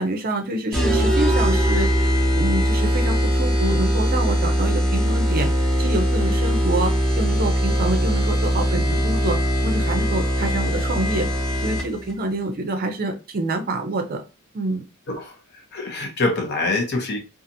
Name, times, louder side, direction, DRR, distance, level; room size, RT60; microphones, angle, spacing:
voice 1, 0.0-5.5 5.8-9.4 9.6-11.3 11.6-14.2 14.5-14.8, right 2 dB, 45° right, 0.5 m, -26 dB
sound 1, 0.7-12.1, equal, 5° left, 0.9 m, -21 dB
voice 2, 15.7-17.2, left 2 dB, 50° left, 0.7 m, -24 dB
2.7 x 2.4 x 2.6 m
head